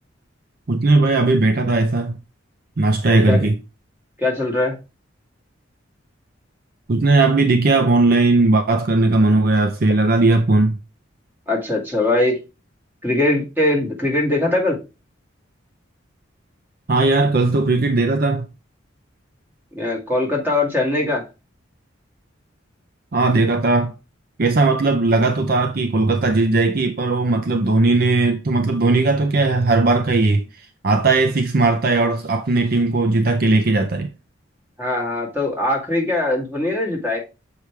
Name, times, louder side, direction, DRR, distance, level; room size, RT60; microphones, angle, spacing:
voice 1, 0.7-2.2 2.8-3.6 6.9-10.8 16.9-18.5 23.1-23.9 24.4-30.4 30.8-34.1, right 2 dB, 50° right, 0.5 m, -17 dB
voice 2, 3.1-3.5 4.2-4.7 11.5-12.4 13.0-14.8 19.7-21.2 34.8-37.2, left 2 dB, 10° right, 2.1 m, -21 dB
7.0 x 4.8 x 3.2 m
head